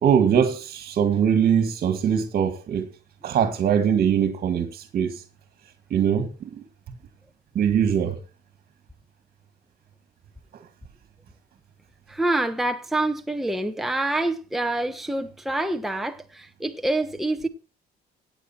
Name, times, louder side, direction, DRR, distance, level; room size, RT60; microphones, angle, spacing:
voice 1, 0.0-2.9 3.2-5.2 5.9-6.6 7.6-8.2, right 8 dB, 55° right, 1.9 m, -22 dB
voice 2, 12.1-17.5, right 2 dB, ahead, 1.0 m, -26 dB
17.0 x 8.2 x 4.4 m
cardioid pair, 110°, 17 cm